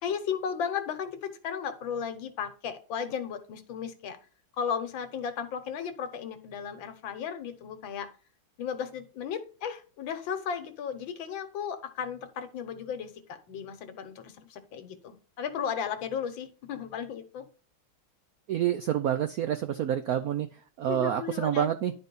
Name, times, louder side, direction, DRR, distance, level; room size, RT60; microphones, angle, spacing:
voice 1, 0.0-4.2 4.6-8.1 8.6-17.5 20.9-21.7, left 7 dB, 70° left, 9 dB, 1.7 m, -35 dB
voice 2, 18.5-20.5 20.8-21.9, right 10 dB, 80° right, 9 dB, 0.8 m, -28 dB
10.5 x 4.0 x 5.3 m, 0.38 s
omnidirectional pair, 2.2 m